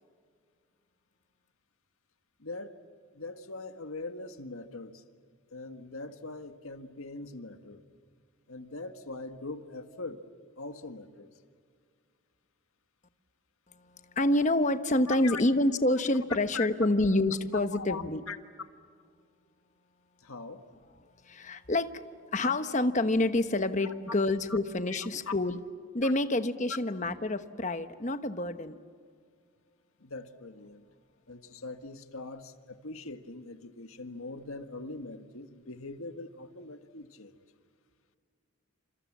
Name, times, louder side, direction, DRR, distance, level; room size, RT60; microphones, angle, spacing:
voice 1, 2.4-2.8 3.1-5.0 5.5-7.8 8.5-10.2 10.6-11.3 15.1-15.4 15.9-16.0 16.5-16.7 17.5-18.4 20.2-20.6 23.8-23.9 24.5-24.6 24.9-25.0 25.3-25.4 26.0-26.1 30.0-30.9 31.3-37.4, left 3 dB, 85° left, 8 dB, 1.7 m, -41 dB
voice 2, 14.1-18.2 21.2-21.9 22.3-25.6 25.9-28.8, left 2 dB, 35° left, 10 dB, 1.1 m, -27 dB
29.5 x 26.5 x 7.4 m, 2.1 s
head